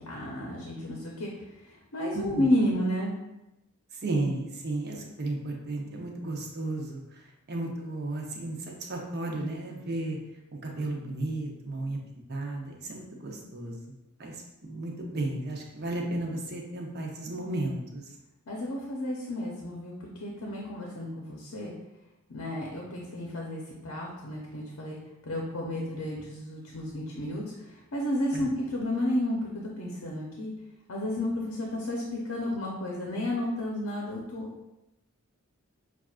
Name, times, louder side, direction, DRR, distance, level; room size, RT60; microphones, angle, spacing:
voice 1, 0.1-1.3 1.6-3.1 18.5-21.7 22.3-25.0 25.2-30.5 30.9-34.5, left 1 dB, 80° left, -2 dB, 0.7 m, -32 dB
voice 2, 2.1-2.7 3.9-10.2 10.6-12.0 12.3-13.8 14.2-18.1 28.3-28.5, right 2 dB, 50° right, 0 dB, 0.7 m, -34 dB
5.9 x 2.4 x 2.4 m, 0.93 s
head